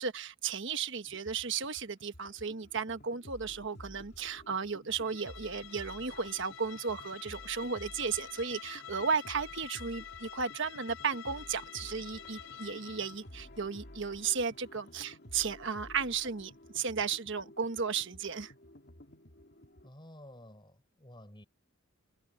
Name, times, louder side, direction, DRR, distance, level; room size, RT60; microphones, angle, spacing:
voice 1, 0.0-18.5, right 6 dB, 60° right, 1.4 m, -34 dB
sound 1, 1.0-19.9, left 1 dB, 50° left, 2.7 m, -53 dB
Bowed string instrument, 4.9-13.3, left 9 dB, 70° left, 4.2 m, -48 dB
voice 2, 19.8-21.5, left 1 dB, 20° left, 5.0 m, -52 dB
head